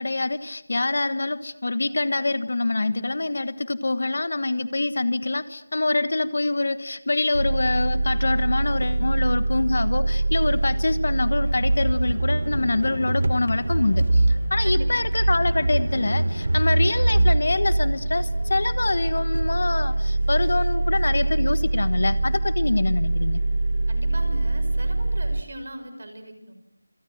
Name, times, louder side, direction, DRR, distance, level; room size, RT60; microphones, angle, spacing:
voice 1, 0.0-23.4, left 2 dB, 45° left, 13 dB, 1.3 m, -25 dB
sound 1, 7.3-25.4, right 2 dB, 55° right, 1.1 m, -23 dB
Musical instrument, 11.4-17.7, left 1 dB, 60° left, 2.7 m, -40 dB
voice 2, 14.6-15.1 23.9-26.5, right 1 dB, 40° right, 8 dB, 5.9 m, -39 dB
28.0 x 27.5 x 7.7 m, 0.82 s
figure-of-eight pair, 180°, 0 cm